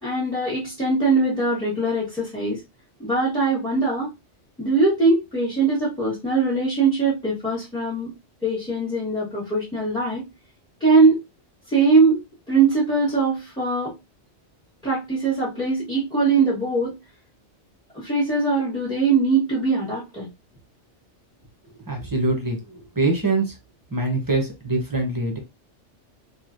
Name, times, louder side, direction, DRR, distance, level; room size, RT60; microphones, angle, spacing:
voice 1, 0.0-2.6 3.0-4.1 4.6-8.1 8.4-10.3 10.8-11.2 11.7-12.2 12.5-13.9 14.8-17.0 17.9-20.3, right 3 dB, 5° left, -8 dB, 1.2 m, -21 dB
voice 2, 21.6-23.5 23.9-25.4, right 2 dB, 20° right, 2 dB, 0.7 m, -24 dB
3.1 x 2.7 x 2.5 m, 0.23 s
omnidirectional pair, 1.2 m